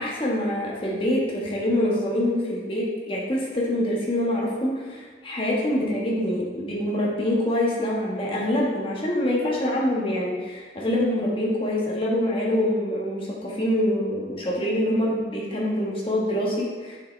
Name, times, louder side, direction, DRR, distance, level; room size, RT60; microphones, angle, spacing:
voice 1, 0.0-17.0, left 1 dB, 30° left, -4 dB, 1.4 m, -25 dB
8.0 x 6.6 x 3.3 m, 1.4 s
head